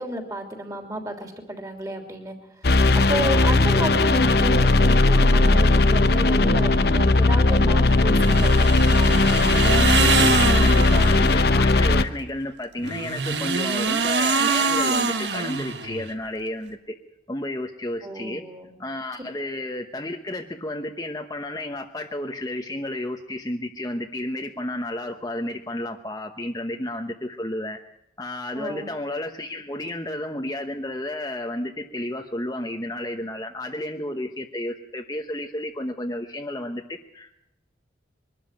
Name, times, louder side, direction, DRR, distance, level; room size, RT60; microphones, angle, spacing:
voice 1, 0.0-2.4 2.6-9.2 18.0-18.8 28.5-28.9, right 1 dB, 20° right, 4 dB, 3.2 m, -32 dB
sound 1, 2.6-12.0, left 2 dB, 55° left, 0.9 m, -18 dB
sound 2, 8.2-11.3 12.8-16.1, right 4 dB, 70° right, 1.6 m, -24 dB
voice 2, 10.4-17.0 17.3-18.4 18.8-27.8 28.2-37.3, left 1 dB, 20° left, 3 dB, 1.1 m, -32 dB
22.5 x 13.0 x 9.2 m, 0.83 s
head